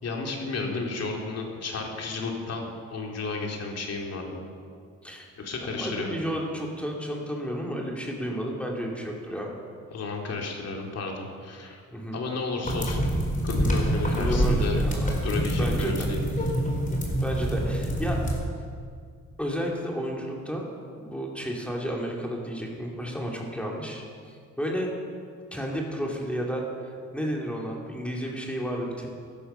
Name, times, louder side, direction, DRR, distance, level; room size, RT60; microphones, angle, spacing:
voice 1, 0.0-4.4 5.4-6.2 9.9-11.8 12.1-13.0 13.4-14.8 15.2-16.3 17.5-17.6, left 3 dB, 55° left, 0 dB, 2.8 m, -32 dB
voice 2, 5.7-9.5 11.9-12.2 14.0-15.2 15.6-16.1 17.2-18.2 18.6-18.7 19.4-20.7 21.0-24.9 25.5-29.1, equal, 5° left, -1 dB, 2.7 m, -32 dB
sound 1, 12.6-18.4, right 1 dB, 25° left, 4.0 m, -26 dB
15.0 x 12.0 x 5.6 m, 2.1 s
cardioid pair, 90°, 30 cm